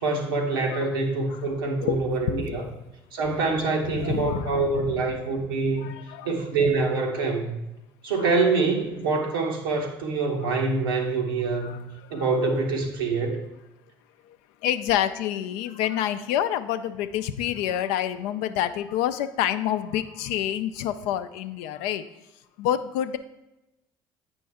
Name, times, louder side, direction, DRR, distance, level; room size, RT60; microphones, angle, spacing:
voice 1, 0.0-2.6 3.1-5.9 6.2-7.6 8.0-11.8 12.1-13.4, right 3 dB, 85° right, 1 dB, 1.0 m, -25 dB
voice 2, 1.3-2.0 2.3-2.6 3.8-4.7 5.8-6.5 8.1-8.4 10.5-10.6 11.6-12.4 14.3-14.4 14.6-22.0 22.6-23.2, left 11 dB, 70° left, 10 dB, 0.5 m, -28 dB
8.4 x 5.3 x 3.5 m, 0.95 s
hypercardioid pair, 60°, 11 cm